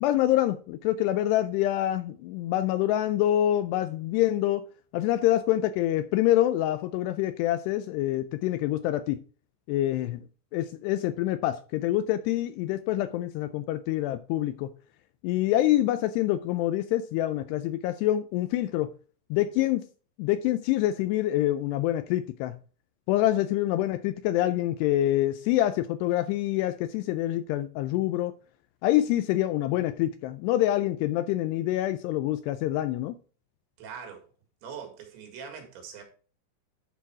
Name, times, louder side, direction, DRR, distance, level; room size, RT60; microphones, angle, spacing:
voice 1, 0.0-4.7 4.9-9.2 9.7-10.2 10.5-14.7 15.2-18.9 19.3-19.9 20.2-22.6 23.1-28.3 28.8-33.2, left 14 dB, 85° left, 2.4 m, -26 dB
voice 2, 33.8-34.2 34.6-36.0, right 6 dB, 80° right, 4.4 m, -42 dB
11.5 x 4.6 x 4.6 m
omnidirectional pair, 5.2 m